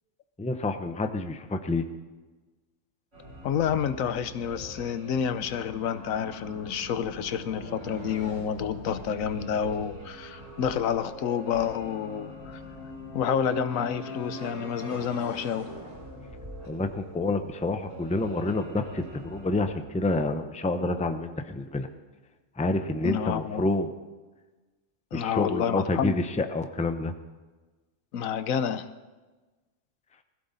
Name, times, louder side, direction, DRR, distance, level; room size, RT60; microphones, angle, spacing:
voice 1, 0.4-1.8 16.7-21.9 22.6-23.9 25.1-27.1, left 2 dB, 10° left, 8 dB, 0.5 m, -28 dB
sound 1, 3.1-19.6, equal, 65° right, 7.8 m, -42 dB
voice 2, 3.4-12.6 13.1-15.7 23.0-23.6 25.1-26.1 28.1-28.9, left 8 dB, 90° left, 12 dB, 1.2 m, -29 dB
21.0 x 15.5 x 4.1 m, 1.3 s
omnidirectional pair, 1.4 m